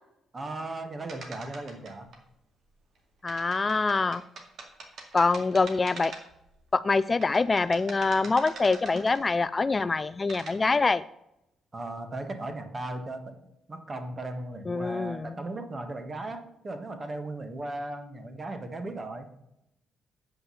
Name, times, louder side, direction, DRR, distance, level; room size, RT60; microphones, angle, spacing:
voice 1, 0.3-2.1 11.7-13.4 13.7-19.3, right 2 dB, 30° right, 7 dB, 1.5 m, -37 dB
sound 1, 1.1-2.2 3.3-6.5 6.9-9.5 10.0-10.6, right 3 dB, 60° right, 2.1 m, -44 dB
voice 2, 3.2-4.2 5.1-6.1 6.7-11.0 14.7-15.4, left 3 dB, 30° left, 15 dB, 0.3 m, -25 dB
8.1 x 5.6 x 6.9 m, 0.86 s
cardioid pair, 90°, 0 cm